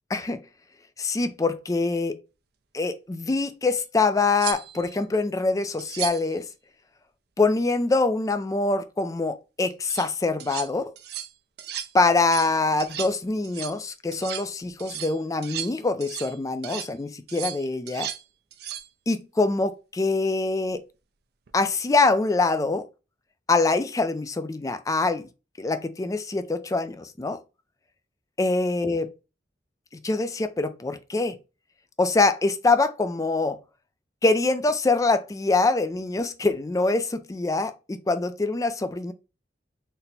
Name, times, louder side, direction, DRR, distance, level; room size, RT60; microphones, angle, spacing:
voice 1, 1.0-2.2 2.7-6.4 7.4-10.9 11.9-18.1 19.1-20.8 21.5-22.8 23.5-25.3 25.6-27.4 28.4-29.1 30.0-31.4 32.0-33.6 34.2-39.1, left 3 dB, 20° left, 0.3 m, -24 dB
sound 1, 3.8-3.9 4.4-4.9 5.8-6.3 9.7-10.1 10.4-10.7 11.0-11.3 11.6-11.9 12.2-12.5 12.8-13.2 13.4-13.8 14.1-14.5 14.8-16.4 16.6-16.9 17.3-18.2 18.5-18.9 21.5-21.7, right 11 dB, 60° right, 0.5 m, -35 dB
4.2 x 2.1 x 4.0 m
head